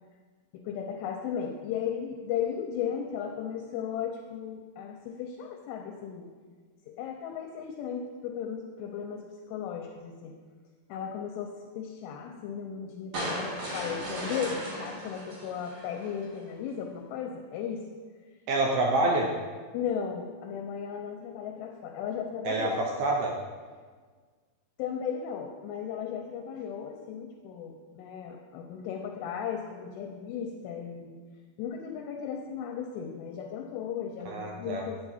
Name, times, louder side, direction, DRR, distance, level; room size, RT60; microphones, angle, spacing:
voice 1, 0.6-6.3 6.9-10.3 10.9-17.8 19.7-22.9 24.8-31.2 31.6-35.0, left 8 dB, 85° left, 2 dB, 2.6 m, -36 dB
sound 1, 13.1-16.4, right 1 dB, 55° right, 2.1 m, -36 dB
voice 2, 18.5-19.3 22.5-23.3 34.3-34.8, right 2 dB, 80° right, -1 dB, 2.3 m, -27 dB
8.9 x 7.4 x 2.7 m, 1.5 s
omnidirectional pair, 5.0 m